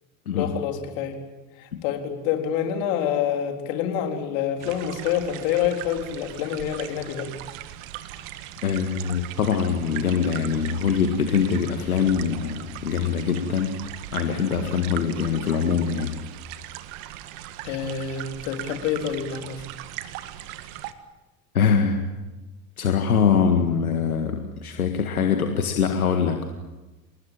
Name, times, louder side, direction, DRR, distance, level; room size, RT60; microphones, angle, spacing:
voice 1, 0.3-1.2 1.6-7.3 17.6-19.6, left 9 dB, 65° left, 4 dB, 4.1 m, -27 dB
sound 1, 4.6-20.9, right 13 dB, 65° right, 1.9 m, -39 dB
voice 2, 8.6-13.7 14.1-16.2 21.5-22.0 22.8-26.4, left 6 dB, 85° left, 5 dB, 1.9 m, -23 dB
29.0 x 20.0 x 9.1 m, 1.1 s
hypercardioid pair, 75°, 42 cm